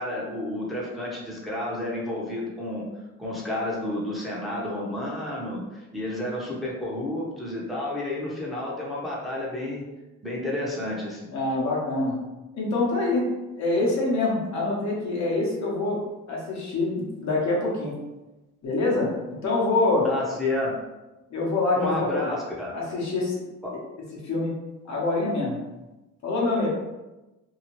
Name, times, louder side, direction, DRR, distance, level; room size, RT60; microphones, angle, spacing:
voice 1, 0.0-2.9 3.2-9.9 10.2-11.3 20.0-20.7 21.8-22.7 23.6-23.7, left 1 dB, ahead, -6 dB, 0.8 m, -30 dB
voice 2, 11.3-12.2 12.5-13.3 13.6-16.0 16.3-18.0 18.6-20.1 21.3-22.2 22.7-23.4 24.2-24.5 24.9-25.6 26.2-26.7, left 2 dB, 65° left, -4 dB, 1.0 m, -25 dB
2.8 x 2.4 x 3.0 m, 1.1 s
cardioid pair, 90°, 30 cm